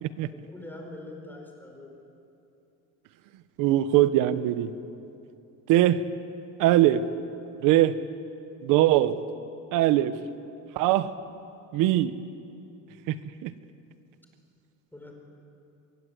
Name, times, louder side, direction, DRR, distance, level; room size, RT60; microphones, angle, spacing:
voice 1, 0.3-1.9 14.9-15.1, left 2 dB, 5° left, 1 dB, 4.7 m, -43 dB
voice 2, 3.6-4.7 5.7-6.0 6.6-7.0 7.6-8.0 8.6-9.2 9.7-10.1 10.7-11.1 11.7-12.1 13.1-13.2 13.4-13.5, right 14 dB, 80° right, 13 dB, 1.2 m, -21 dB
25.5 x 22.5 x 8.3 m, 2.7 s
cardioid pair, 150°, 32 cm